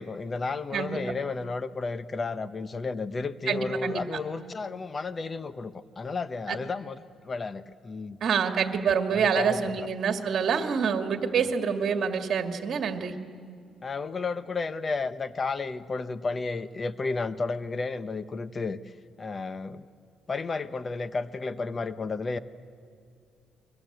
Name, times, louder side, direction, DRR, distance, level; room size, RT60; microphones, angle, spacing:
voice 1, 0.0-8.2 9.1-9.9 11.3-11.5 13.8-18.9 19.2-19.9 20.3-22.4, left 4 dB, 35° left, 12 dB, 1.1 m, -32 dB
voice 2, 3.5-4.0 8.2-13.1, right 6 dB, 60° right, 6 dB, 2.2 m, -26 dB
30.0 x 23.0 x 8.1 m, 2.3 s
cardioid pair, 90°, 0 cm